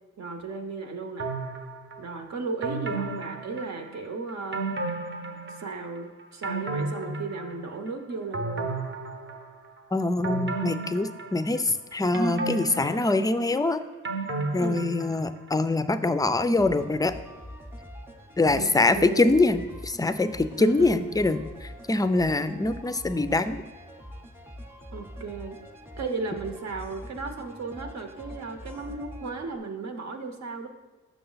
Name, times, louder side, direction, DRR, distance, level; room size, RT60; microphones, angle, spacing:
voice 1, 0.2-1.3 2.0-4.7 5.5-8.7 14.6-14.9 18.5-18.7 18.9-19.4 20.6-21.1 24.9-25.5 26.0-30.7, right 4 dB, 65° right, 4 dB, 0.9 m, -35 dB
sound 1, 1.2-2.0 2.6-4.1 4.5-5.9 6.2-7.9 8.3-9.7 10.2-11.7 12.1-15.4 15.7-15.8, right 3 dB, 40° right, 0.8 m, -33 dB
voice 2, 9.9-13.8 14.5-17.1 18.4-23.6, left 2 dB, 15° left, 11 dB, 0.4 m, -24 dB
sound 2, 16.6-29.6, equal, 10° right, 0.8 m, -44 dB
6.7 x 6.2 x 4.0 m, 1.2 s
cardioid pair, 75°, 30 cm